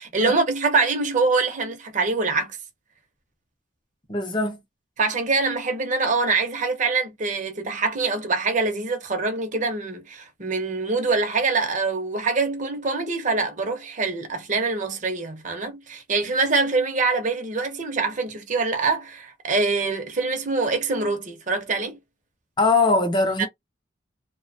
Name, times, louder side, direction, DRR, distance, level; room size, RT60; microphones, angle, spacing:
voice 1, 0.0-2.6 5.0-22.0 23.4-23.5, right 3 dB, 40° right, 0.7 m, -24 dB
voice 2, 4.1-4.6 22.6-23.5, left 3 dB, 25° left, 0.6 m, -21 dB
2.7 x 2.1 x 2.6 m
head